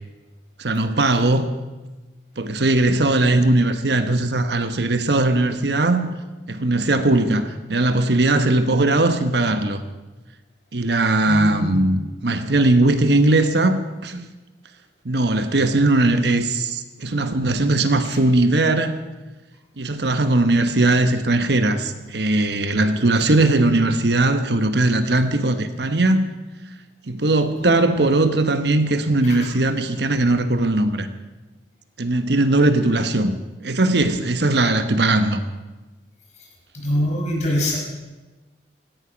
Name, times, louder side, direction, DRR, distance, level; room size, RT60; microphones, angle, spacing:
voice 1, 0.6-1.5 2.4-6.1 6.5-9.8 10.7-14.3 15.0-19.0 19.8-26.3 27.1-31.1 32.0-33.4 33.6-35.4, right 2 dB, 70° right, 9 dB, 1.2 m, -19 dB
voice 2, 11.3-11.8 27.6-28.0 36.8-37.8, equal, 40° left, -2 dB, 5.3 m, -24 dB
17.0 x 15.0 x 5.2 m, 1.2 s
head